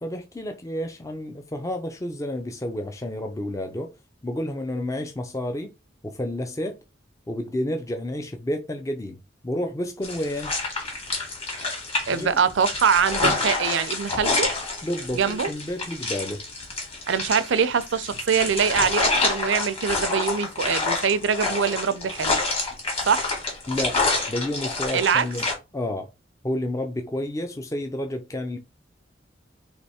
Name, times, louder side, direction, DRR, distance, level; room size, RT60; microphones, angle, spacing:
voice 1, 0.0-3.9 4.2-5.7 6.0-6.8 7.3-9.2 9.4-10.6 12.1-12.3 14.8-16.4 23.7-24.0 24.3-25.5 25.7-26.1 26.4-28.6, left 1 dB, 15° left, 0.5 m, -30 dB
sound 1, 10.0-25.5, left 3 dB, 30° left, 1.7 m, -27 dB
voice 2, 12.1-14.5 15.1-15.5 17.1-22.4 23.0-23.3 24.9-25.3, right 6 dB, 75° right, 0.5 m, -23 dB
3.3 x 3.0 x 4.2 m
head